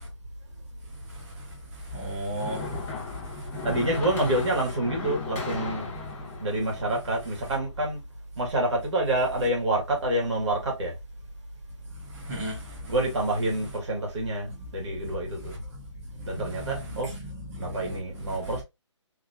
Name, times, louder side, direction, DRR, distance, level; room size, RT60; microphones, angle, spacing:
sound 1, 1.9-8.0, left 4 dB, 10° left, 1.0 m, -36 dB
voice 1, 1.9-2.6 12.3-12.6 16.3-17.0 17.5-18.0 18.3-18.4, equal, 30° right, 1.5 m, -34 dB
voice 2, 3.6-6.0 6.4-8.0 8.4-10.9 12.9-15.6 16.3-17.1 17.6-18.6, right 1 dB, 65° right, 2.1 m, -27 dB
3.6 x 3.2 x 2.7 m
hypercardioid pair, 160°, 16 cm